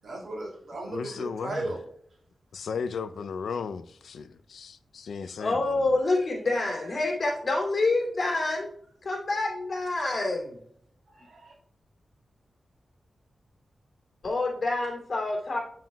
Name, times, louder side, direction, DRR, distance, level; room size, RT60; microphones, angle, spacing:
voice 1, 0.0-1.8 6.9-7.0 11.1-11.5, right 2 dB, 60° right, 2.4 m, -36 dB
voice 2, 0.9-1.7 2.5-6.0, left 5 dB, 90° left, 0.4 m, -36 dB
voice 3, 5.4-8.7 9.0-10.5 14.2-15.6, left 2 dB, 45° left, 2.4 m, -27 dB
7.4 x 7.3 x 2.2 m
wide cardioid pair, 145°, 0 cm